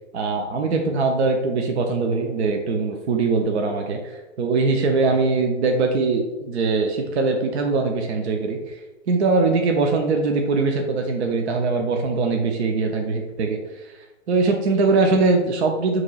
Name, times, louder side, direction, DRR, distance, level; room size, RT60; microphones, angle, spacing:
voice 1, 0.1-8.8 9.1-13.6 14.3-16.0, right 3 dB, 60° right, 3 dB, 0.6 m, -22 dB
6.2 x 3.1 x 2.3 m, 1.1 s
hypercardioid pair, 160°, 37 cm